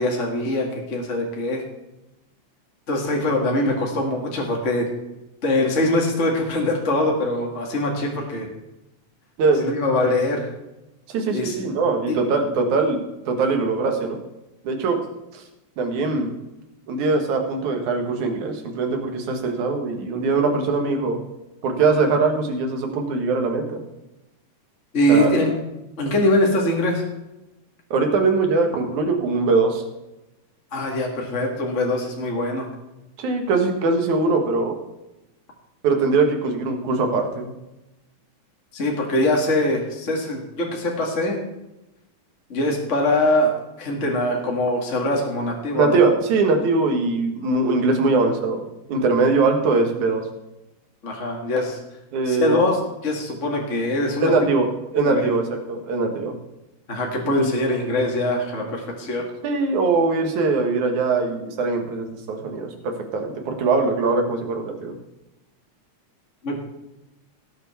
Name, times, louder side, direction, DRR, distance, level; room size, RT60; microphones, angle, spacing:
voice 1, 0.0-1.6 2.9-4.9 5.4-8.5 9.6-10.5 11.3-11.6 12.1-12.2 20.5-20.6 24.9-25.5 26.0-27.0 30.7-32.7 38.7-41.4 42.5-43.5 43.8-46.0 51.0-51.8 52.3-54.3 55.1-55.3 56.9-59.3 66.4-66.6, left 1 dB, 30° left, 0 dB, 1.7 m, -23 dB
voice 2, 11.1-14.2 14.6-15.0 15.3-15.4 15.8-16.3 16.9-21.2 21.6-23.8 25.1-25.4 27.9-29.8 33.2-34.8 35.8-37.5 45.7-48.6 48.9-50.2 52.1-52.6 54.2-54.7 54.9-55.4 55.7-56.3 57.3-57.5 59.4-64.9, right 3 dB, 75° right, 4 dB, 3.1 m, -21 dB
18.0 x 7.3 x 4.3 m, 0.96 s
omnidirectional pair, 3.4 m